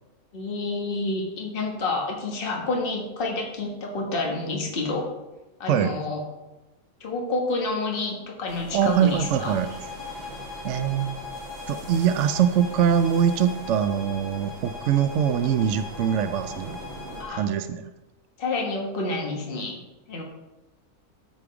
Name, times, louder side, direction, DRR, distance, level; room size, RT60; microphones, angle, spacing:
voice 1, 0.3-5.0 5.6-6.2 7.0-9.5 17.2-17.4 18.4-19.8 20.1-20.2, left 3 dB, 40° left, 0 dB, 1.7 m, -29 dB
sound 1, 8.5-17.2, right 1 dB, 40° right, 2.1 m, -42 dB
voice 2, 8.7-9.8 10.6-11.2 11.7-16.8 17.3-17.8, right 9 dB, 65° right, 9 dB, 0.8 m, -23 dB
sound 2, 8.8-17.5, left 5 dB, 55° left, 1.8 m, -41 dB
13.5 x 5.2 x 4.8 m, 1.0 s
omnidirectional pair, 1.6 m